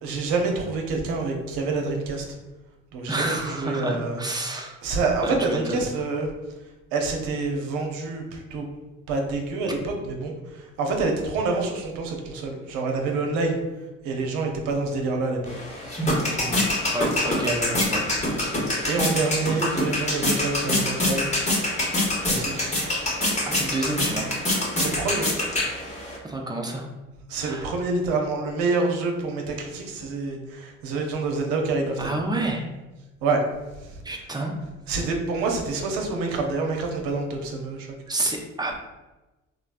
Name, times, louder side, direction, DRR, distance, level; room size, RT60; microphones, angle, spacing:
voice 1, 0.0-2.3 2.9-4.2 4.8-6.3 6.9-8.7 9.1-13.6 14.0-15.5 16.1-16.7 17.4-17.8 18.6-21.3 22.2-22.7 24.7-25.3 27.3-32.1 33.2-33.4 33.8-34.0 34.9-37.9, right 3 dB, 65° right, 3 dB, 0.7 m, -27 dB
voice 2, 3.1-4.8 5.2-5.8 16.9-18.1 23.5-24.3 26.2-26.9 27.4-27.7 32.0-32.7 34.0-34.6 38.1-38.8, right 2 dB, 10° right, 2 dB, 0.4 m, -29 dB
sound 1, 15.5-26.2, left 1 dB, 20° left, 1.0 m, -25 dB
3.2 x 2.0 x 2.4 m, 1.1 s
hypercardioid pair, 60°, 36 cm